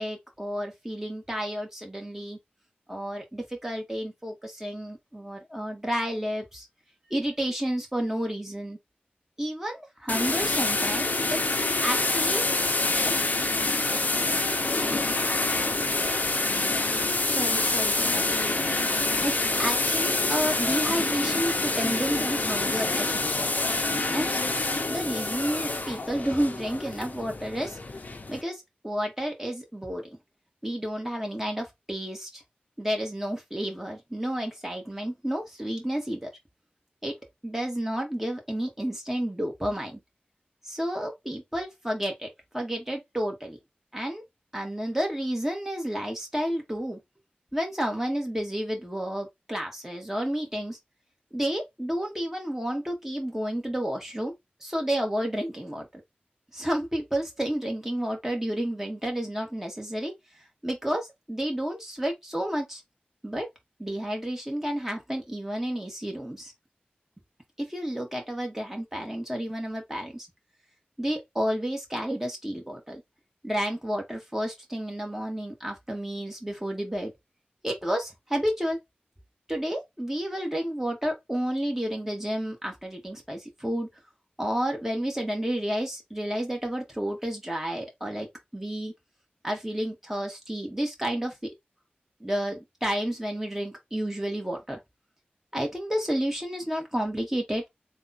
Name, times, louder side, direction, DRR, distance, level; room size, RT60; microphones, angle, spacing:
voice 1, 0.0-2.4 2.9-6.7 7.1-8.8 9.4-12.4 13.0-13.1 17.2-18.2 19.2-23.5 24.1-24.3 24.9-27.8 28.3-30.1 30.6-32.4 32.8-36.3 37.0-37.1 37.4-40.0 40.6-42.3 42.5-43.6 43.9-44.2 44.5-47.0 47.5-50.8 51.3-54.3 54.6-55.9 56.5-60.1 60.6-62.8 63.2-63.5 63.8-66.5 67.6-70.3 71.0-73.0 73.4-77.1 77.6-78.8 79.5-83.9 84.4-88.3 88.5-88.9 89.4-91.5 92.2-94.8 95.5-97.6, equal, 10° right, 1.6 m, -31 dB
sound 1, 10.1-28.4, left 2 dB, 55° left, 0.6 m, -26 dB
3.5 x 2.4 x 4.1 m
wide cardioid pair, 65°, 3 cm